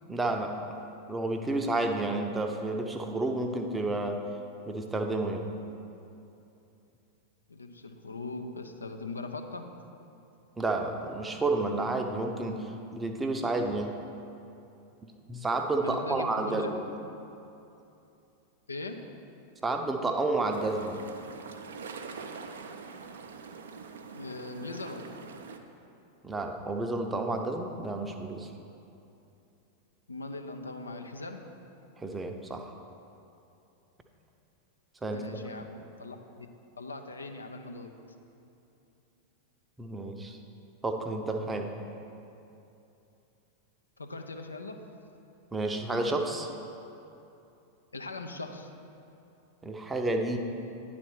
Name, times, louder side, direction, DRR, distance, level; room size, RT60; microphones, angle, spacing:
voice 1, 0.1-0.8 1.1-4.2 4.7-5.5 10.6-14.0 15.3-16.8 19.6-21.0 26.2-28.5 32.0-32.7 35.0-35.2 39.8-40.4 40.8-41.7 45.5-46.5 49.6-50.4, right 2 dB, 10° right, 4 dB, 0.6 m, -30 dB
voice 2, 7.5-9.7 15.8-16.8 18.7-19.1 24.1-25.2 30.1-31.5 35.1-36.5 36.8-38.0 44.0-44.8 47.9-48.7, left 2 dB, 75° left, 5 dB, 0.5 m, -40 dB
sound 1, 20.5-25.6, right 5 dB, 65° right, 0.5 m, -44 dB
9.7 x 4.2 x 6.1 m, 2.8 s
figure-of-eight pair, 90°, 0 cm